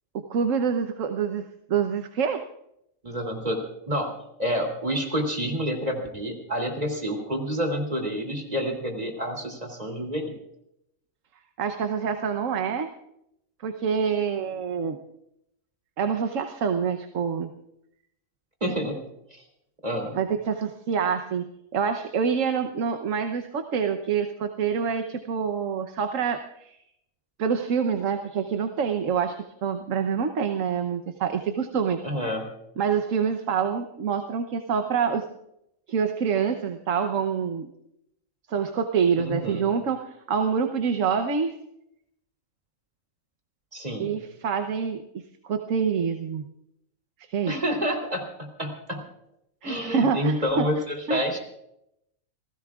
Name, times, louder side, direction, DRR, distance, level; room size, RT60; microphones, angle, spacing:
voice 1, 0.1-2.4 11.6-12.9 13.6-15.0 16.0-17.5 20.1-26.8 27.4-32.0 32.8-35.2 35.9-37.7 38.5-41.6 44.0-45.0 45.4-46.4 47.3-47.5 49.6-50.7 51.1-51.4, right 6 dB, 70° right, 7 dB, 1.3 m, -26 dB
voice 2, 3.0-4.1 4.4-10.3 18.6-19.0 19.3-19.4 19.8-20.2 32.0-32.4 39.2-39.7 43.7-44.2 47.5-49.0 49.6-51.4, equal, 30° right, 3 dB, 3.1 m, -28 dB
29.5 x 16.5 x 2.4 m, 0.79 s
omnidirectional pair, 1.4 m